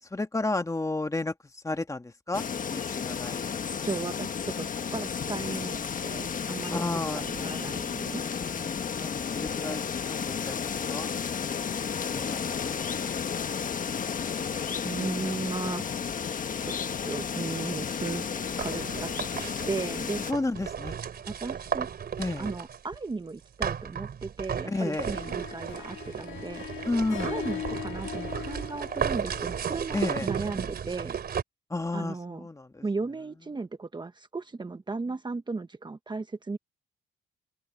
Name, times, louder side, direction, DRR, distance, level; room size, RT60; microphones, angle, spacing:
voice 1, 0.1-2.4 2.7-3.5 6.7-7.7 7.9-11.1 12.1-13.4 20.3-21.0 22.2-22.5 24.7-25.2 26.9-27.5 29.9-30.3 31.7-32.8, left 2 dB, 15° left, 2.0 m, -33 dB
sound 1, 2.3-20.3, left 6 dB, 45° left, 1.3 m, -32 dB
voice 2, 3.8-6.8 7.1-8.2 14.8-16.0 16.6-18.3 18.6-19.1 19.7-20.2 21.3-21.9 22.4-26.6 27.2-31.1 31.9-32.5 32.8-36.6, right 3 dB, 20° right, 1.3 m, -36 dB
sound 2, 18.4-23.0 23.6-31.4, right 7 dB, 50° right, 3.5 m, -34 dB
Harp, 24.6-30.0, left 11 dB, 75° left, 2.0 m, -40 dB
open air
cardioid pair, 90°, 20 cm